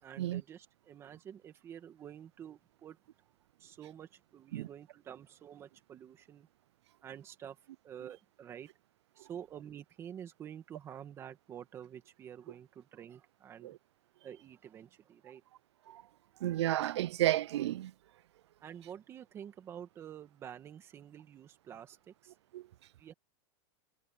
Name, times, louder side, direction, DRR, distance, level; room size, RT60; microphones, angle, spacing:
voice 1, 0.0-3.0 3.6-6.5 7.0-7.6 7.8-8.7 9.2-13.8 14.2-15.4 18.6-22.3 23.0-23.1, right 9 dB, 15° right, 2.2 m, -49 dB
voice 2, 16.4-17.9 22.5-22.6, right 14 dB, 70° right, 0.5 m, -32 dB
supercardioid pair, 170°, 15 cm